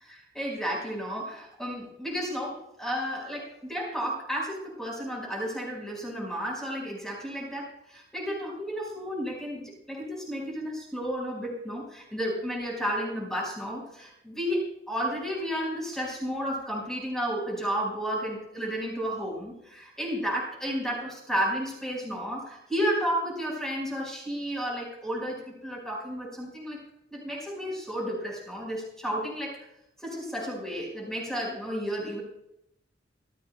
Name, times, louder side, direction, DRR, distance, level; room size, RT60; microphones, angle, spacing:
voice 1, 0.1-26.8 27.1-29.7 30.0-32.2, equal, ahead, -3 dB, 4.8 m, -32 dB
25.5 x 14.5 x 2.2 m, 0.82 s
head